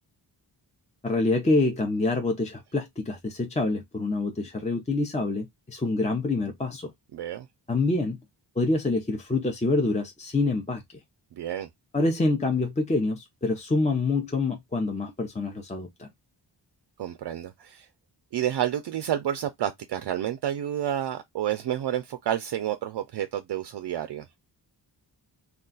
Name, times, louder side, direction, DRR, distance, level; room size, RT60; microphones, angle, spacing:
voice 1, 1.0-6.9 7.7-8.2 8.6-10.8 11.9-16.1, left 3 dB, 15° left, 0.6 m, -26 dB
voice 2, 7.1-7.5 11.4-11.7 17.0-17.9 18.3-24.3, right 11 dB, 70° right, 0.5 m, -30 dB
2.4 x 2.3 x 3.7 m
wide cardioid pair, 100°, 42 cm